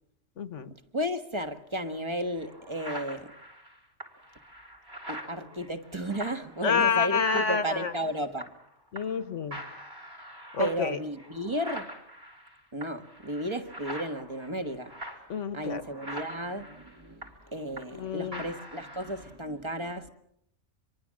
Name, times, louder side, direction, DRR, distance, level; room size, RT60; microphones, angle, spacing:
voice 1, 0.4-0.7 6.6-7.9 8.9-9.6 10.5-11.0 15.3-15.8 17.9-18.4, left 6 dB, 70° left, 1.6 m, -28 dB
voice 2, 0.9-3.3 5.1-8.5 10.6-11.9 12.7-14.9 15.5-20.1, equal, 20° right, 1.5 m, -33 dB
sound 1, 1.9-2.0 2.4-8.7 9.0-9.2 9.5-18.0 18.3-19.3, equal, 50° right, 4.2 m, -44 dB
26.0 x 23.0 x 7.5 m
omnidirectional pair, 1.3 m